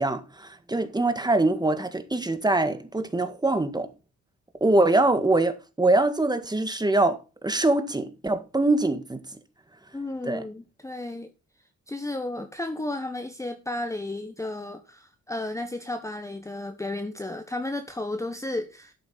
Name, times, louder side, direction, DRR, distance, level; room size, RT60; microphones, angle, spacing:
voice 1, 0.0-3.9 4.6-9.2 10.2-10.4, right 2 dB, 15° right, 1.8 m, -23 dB
voice 2, 9.9-11.3 11.9-18.9, left 2 dB, 10° left, 1.1 m, -33 dB
11.5 x 8.3 x 4.0 m
cardioid pair, 95°, 31 cm